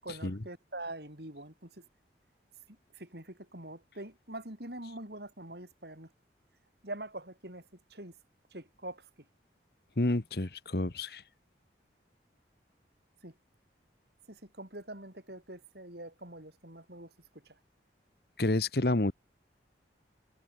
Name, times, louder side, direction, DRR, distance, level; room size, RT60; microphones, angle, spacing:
voice 1, 0.0-1.8 3.0-6.1 6.8-7.6 7.9-8.1 8.5-9.0 13.2-13.3 14.3-17.1, right 1 dB, 65° right, 8.0 m, -44 dB
voice 2, 10.0-11.2 18.4-19.1, left 2 dB, 60° left, 1.3 m, -29 dB
head